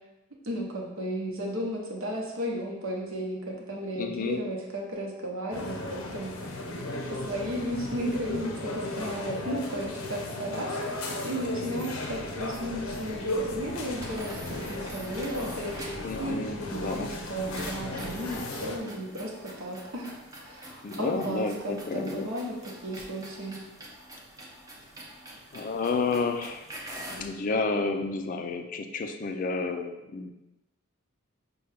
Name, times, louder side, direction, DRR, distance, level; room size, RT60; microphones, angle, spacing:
voice 1, 0.4-6.3 7.1-19.3 19.6-20.1 20.4-23.6, equal, 70° right, -1 dB, 0.9 m, -34 dB
voice 2, 3.9-4.4 16.0-17.2 20.8-22.3 25.5-26.6 27.1-30.3, left 4 dB, 40° left, 6 dB, 0.3 m, -31 dB
sound 1, 5.5-18.8, left 2 dB, 80° left, 0.6 m, -35 dB
Train, 12.1-18.4, equal, 45° right, 0.8 m, -48 dB
sound 2, 13.9-16.1 17.5-27.3, right 1 dB, 15° right, 0.6 m, -45 dB
5.5 x 2.2 x 3.3 m, 1.0 s
head